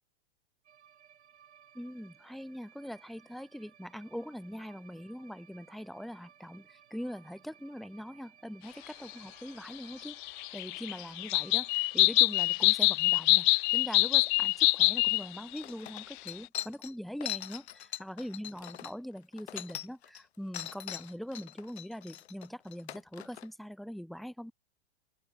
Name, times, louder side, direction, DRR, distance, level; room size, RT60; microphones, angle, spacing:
sound 1, 0.6-12.8, right 9 dB, 80° right, 5.7 m, -60 dB
voice 1, 1.7-10.2 10.5-17.6 18.0-24.5, equal, ahead, 0.9 m, -42 dB
sound 2, 10.0-15.3 15.6-15.7 16.0-16.1, left 28 dB, 45° left, 0.8 m, -25 dB
sound 3, 15.1-15.2 15.6-20.2 20.5-23.5, left 11 dB, 75° left, 4.9 m, -42 dB
open air
hypercardioid pair, 120°, 33 cm